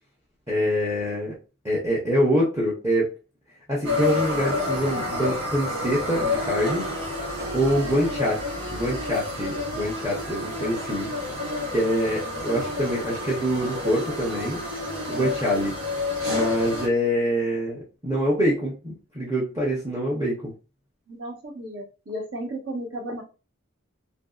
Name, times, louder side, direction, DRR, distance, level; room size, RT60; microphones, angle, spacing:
voice 1, 0.5-1.3 1.6-3.1 3.7-6.9 7.5-11.1 11.7-14.6 15.1-15.8 16.3-20.5, equal, 15° right, -5 dB, 0.6 m, -25 dB
sound 1, 3.8-16.9, left 2 dB, 90° right, 1.2 m, -29 dB
voice 2, 21.1-23.2, right 1 dB, 55° right, 1 dB, 0.9 m, -34 dB
2.8 x 2.6 x 2.3 m, 0.31 s
head